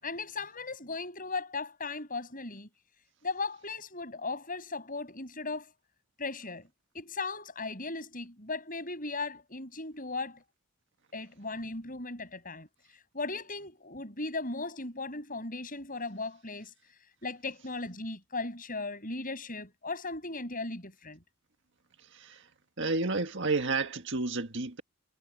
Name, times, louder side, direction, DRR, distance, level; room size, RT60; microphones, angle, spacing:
voice 1, 0.0-2.7 3.2-5.7 6.2-6.7 6.9-10.4 11.1-12.7 13.1-16.7 17.2-21.2, left 3 dB, 40° left, 7.9 m, -37 dB
voice 2, 22.1-22.5 22.8-24.8, right 3 dB, 55° right, 1.8 m, -31 dB
head